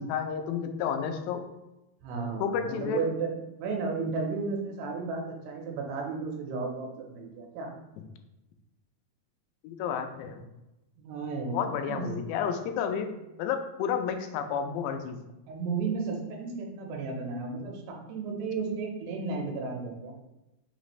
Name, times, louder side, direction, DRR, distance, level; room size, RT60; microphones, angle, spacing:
voice 1, 0.0-1.5 2.4-3.0 9.6-10.5 11.5-13.1 13.4-15.2, left 7 dB, 85° left, 6 dB, 2.7 m, -31 dB
voice 2, 2.0-3.3 3.6-7.7 11.0-12.1 15.5-20.1, right 4 dB, 80° right, 0 dB, 2.7 m, -33 dB
6.3 x 2.5 x 3.1 m, 0.96 s
omnidirectional pair, 4.8 m